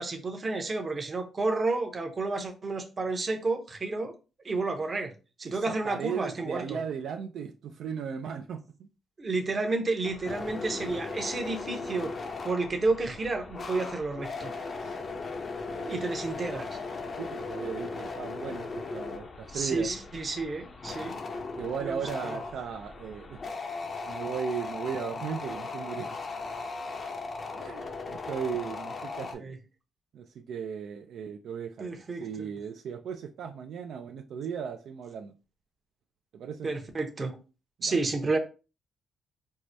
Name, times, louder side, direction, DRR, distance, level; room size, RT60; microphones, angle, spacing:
voice 1, 0.0-4.1 4.4-5.1 5.4-6.8 9.2-12.1 12.4-14.5 15.9-16.7 19.5-21.1 21.8-22.4 29.4-29.6 31.8-32.5 36.6-37.3 37.8-38.4, right 3 dB, 35° right, 0.7 m, -31 dB
voice 2, 5.4-8.9 14.8-15.0 15.7-16.0 17.1-19.9 21.6-23.4 24.1-26.2 27.6-29.5 30.1-35.3 36.3-36.7 37.8-38.0, right 7 dB, 70° right, 0.3 m, -37 dB
sound 1, 10.0-29.3, left 3 dB, 40° left, 0.5 m, -38 dB
4.6 x 2.0 x 2.6 m
cardioid pair, 90°, 0 cm